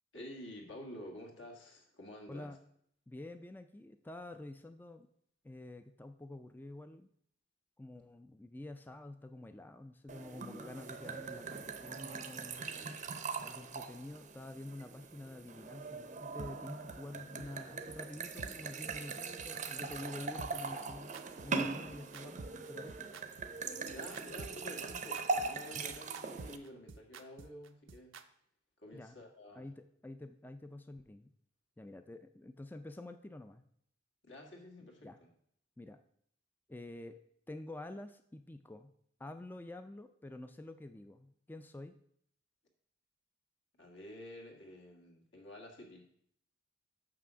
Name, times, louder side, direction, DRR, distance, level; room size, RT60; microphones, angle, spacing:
voice 1, 0.1-2.6 23.8-28.1 28.8-29.7 34.2-35.1 43.8-46.0, left 1 dB, 70° left, 1 dB, 1.9 m, -50 dB
voice 2, 3.1-5.1 5.4-7.1 7.8-12.7 13.4-21.1 21.4-23.1 28.9-29.2 29.5-31.3 31.8-33.6 35.0-35.2 35.8-36.0 36.7-37.2 37.5-38.9 39.2-41.9, left 1 dB, 10° left, 8 dB, 0.4 m, -48 dB
sound 1, 10.1-26.6, right 4 dB, 40° right, 0.6 m, -41 dB
sound 2, 16.4-16.5 16.9-17.0 17.4-17.5 17.9-18.0 18.4-18.5 18.9-19.0 19.4-19.5 19.9-20.0 20.4-28.2, right 4 dB, 80° right, 0.6 m, -49 dB
6.7 x 5.9 x 6.1 m, 0.67 s
head